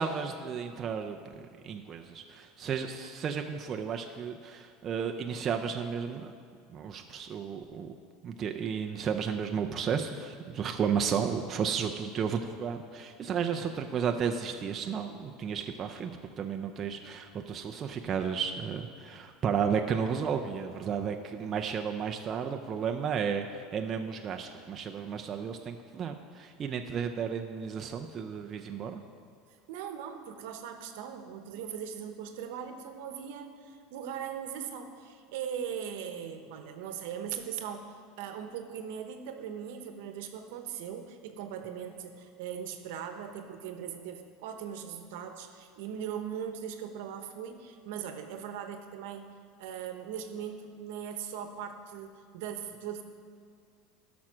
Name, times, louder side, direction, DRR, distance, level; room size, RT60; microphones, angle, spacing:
voice 1, 0.0-1.3 1.6-6.3 6.7-7.9 8.2-16.1 16.4-29.0, right 7 dB, 30° right, 4 dB, 0.5 m, -33 dB
voice 2, 29.7-49.3 49.6-53.0, right 8 dB, 75° right, 7 dB, 1.0 m, -39 dB
12.0 x 6.1 x 6.2 m, 2.2 s
supercardioid pair, 130°, 0 cm